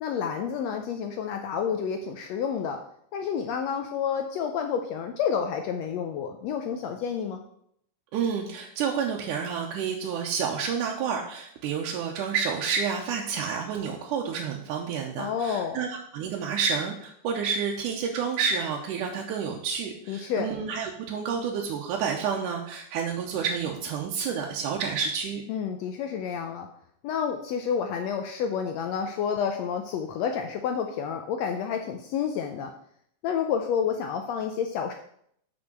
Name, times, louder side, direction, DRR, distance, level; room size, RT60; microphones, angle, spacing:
voice 1, 0.0-2.8 3.1-7.4 15.2-15.8 20.1-20.5 25.5-26.7 27.0-32.7 33.2-34.9, left 7 dB, 75° left, 5 dB, 1.6 m, -29 dB
voice 2, 8.1-15.9 16.1-25.4, right 6 dB, 85° right, 0 dB, 2.3 m, -29 dB
6.3 x 6.2 x 6.0 m, 0.69 s
omnidirectional pair, 3.6 m